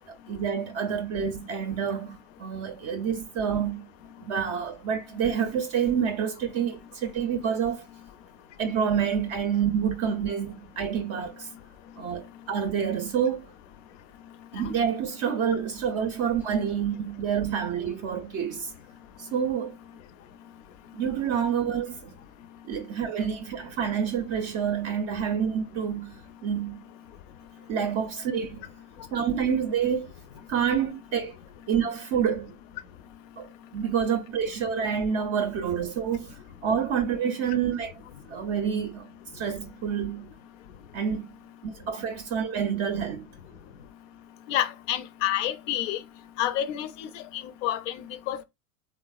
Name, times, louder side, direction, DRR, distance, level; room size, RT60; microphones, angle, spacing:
voice 1, 0.1-3.9 4.2-7.8 8.6-11.5 12.0-13.5 14.5-18.7 19.2-19.8 20.9-22.2 22.6-26.2 26.4-26.8 27.7-28.6 29.1-30.1 30.5-31.4 31.7-32.5 33.4-37.9 38.3-40.3 40.9-41.3 41.6-43.3, right 7 dB, 35° right, 0.5 m, -28 dB
voice 2, 44.5-46.0 46.4-48.4, left 12 dB, 55° left, 0.6 m, -29 dB
3.3 x 2.0 x 2.3 m
hypercardioid pair, 90°, 44 cm